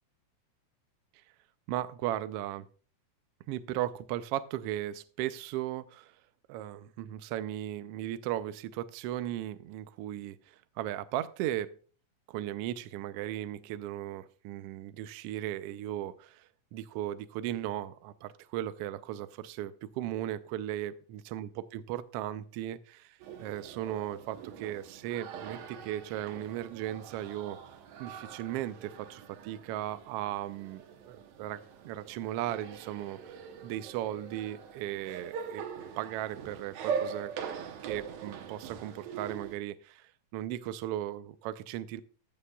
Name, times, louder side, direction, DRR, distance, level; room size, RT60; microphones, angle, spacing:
voice 1, 1.7-2.7 3.5-6.2 6.5-11.7 12.3-27.6 28.0-35.6 36.0-37.3 37.8-42.0, right 13 dB, 85° right, 12 dB, 1.3 m, -37 dB
sound 1, 23.2-39.6, right 7 dB, 70° right, 2.2 m, -42 dB
14.5 x 8.5 x 2.3 m, 0.40 s
omnidirectional pair, 3.4 m